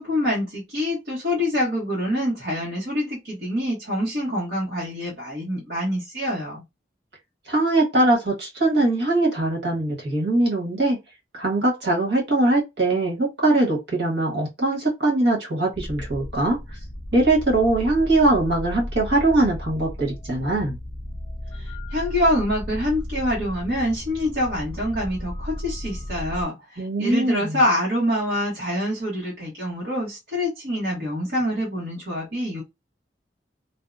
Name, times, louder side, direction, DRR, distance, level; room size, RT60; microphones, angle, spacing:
voice 1, 0.0-6.6 21.5-32.6, left 1 dB, 55° right, 1.0 m, -26 dB
voice 2, 7.5-11.0 11.3-16.6 17.1-20.8 26.8-27.6, right 2 dB, 75° right, 1.3 m, -21 dB
sound 1, 15.7-26.4, left 1 dB, 20° left, 0.3 m, -34 dB
2.7 x 2.0 x 2.3 m
head